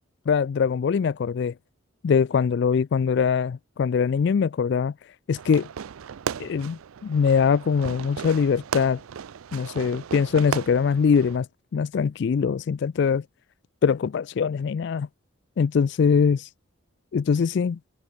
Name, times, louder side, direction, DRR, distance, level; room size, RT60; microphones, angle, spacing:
voice 1, 0.3-1.5 2.0-4.9 5.3-5.7 6.4-9.0 9.5-11.5 11.7-13.2 13.8-15.1 15.6-16.5 17.1-17.8, left 6 dB, 55° left, 0.3 m, -22 dB
Fireworks, 5.3-11.4, right 7 dB, 80° right, 0.4 m, -35 dB
head